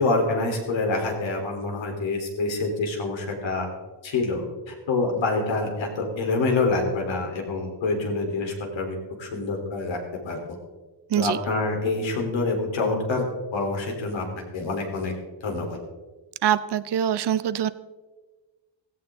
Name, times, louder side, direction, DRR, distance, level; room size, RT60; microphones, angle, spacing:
voice 1, 0.0-3.7 4.0-10.0 10.2-10.4 11.2-13.2 13.5-14.2 14.5-15.1 15.4-15.8, left 3 dB, 75° left, 2 dB, 3.9 m, -26 dB
voice 2, 16.4-17.7, right 10 dB, 60° right, 15 dB, 0.8 m, -24 dB
16.5 x 16.0 x 3.8 m, 1.2 s
wide cardioid pair, 160°, 45 cm